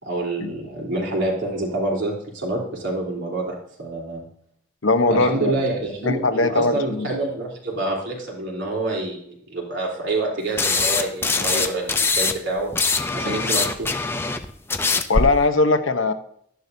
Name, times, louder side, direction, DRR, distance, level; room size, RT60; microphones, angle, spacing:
voice 1, 0.0-4.2 5.1-12.7 13.1-13.9, right 2 dB, 65° right, -2 dB, 3.6 m, -27 dB
voice 2, 4.8-5.5 6.0-7.1 13.2-13.4 15.1-16.1, left 3 dB, 80° left, 8 dB, 0.9 m, -20 dB
sound 1, 10.6-12.3 12.6-15.2, left 4 dB, 10° left, 0.5 m, -22 dB
12.0 x 10.5 x 2.7 m, 0.66 s
head